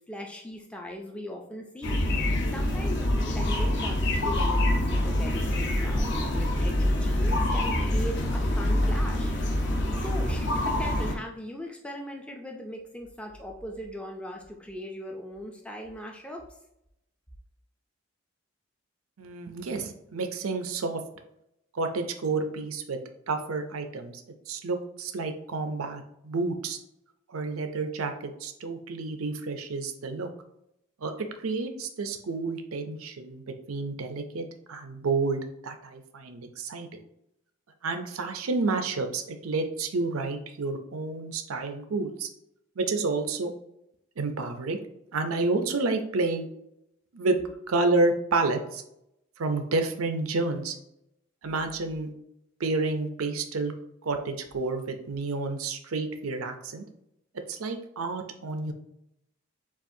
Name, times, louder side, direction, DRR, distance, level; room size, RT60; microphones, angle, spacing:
voice 1, 0.0-2.0 2.5-9.3 9.7-16.4, equal, 5° left, 1 dB, 0.4 m, -39 dB
sound 1, 1.8-11.1, left 1 dB, 55° left, 0.7 m, -26 dB
voice 2, 19.2-21.0 21.7-23.0 23.3-24.2 24.5-26.8 27.3-28.1 28.4-30.3 31.0-33.4 33.7-36.9 37.8-42.3 42.8-43.5 44.2-44.8 45.1-46.4 47.1-47.4 47.7-48.8 49.4-50.8 51.4-52.1 52.6-53.7 54.0-56.8 57.5-58.7, right 3 dB, 90° right, 6 dB, 0.6 m, -30 dB
7.1 x 2.5 x 2.7 m, 0.81 s
head